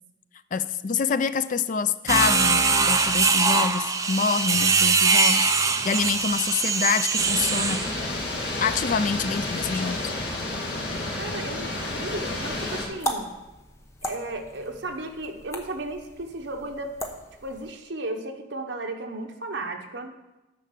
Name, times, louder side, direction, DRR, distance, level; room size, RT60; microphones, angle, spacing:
voice 1, 0.5-5.5 5.8-7.8 8.6-10.1, left 6 dB, 45° left, 13 dB, 0.4 m, -26 dB
sound 1, 2.1-7.9, right 4 dB, 20° right, 0.5 m, -22 dB
sound 2, 7.2-12.9, left 2 dB, 60° left, 2.1 m, -31 dB
voice 2, 11.1-13.3 14.0-17.0 17.4-20.1, right 2 dB, 75° right, 4 dB, 1.1 m, -34 dB
sound 3, 11.9-17.7, equal, 15° left, 0.8 m, -38 dB
9.7 x 5.6 x 6.7 m, 1.0 s
head